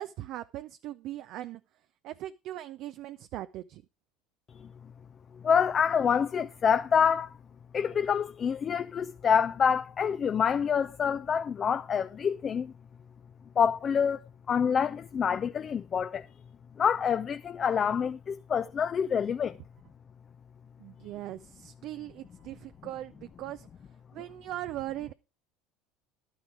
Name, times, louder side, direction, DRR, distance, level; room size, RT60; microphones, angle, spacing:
voice 1, 0.0-1.6 2.0-3.8 20.8-23.7 24.1-25.1, right 14 dB, 60° right, 0.5 m, -39 dB
voice 2, 5.4-7.4 7.7-12.7 13.6-14.2 14.5-16.3 16.8-19.6, left 7 dB, 35° left, 0.6 m, -27 dB
11.5 x 9.3 x 4.9 m
hypercardioid pair, 75°, 0 cm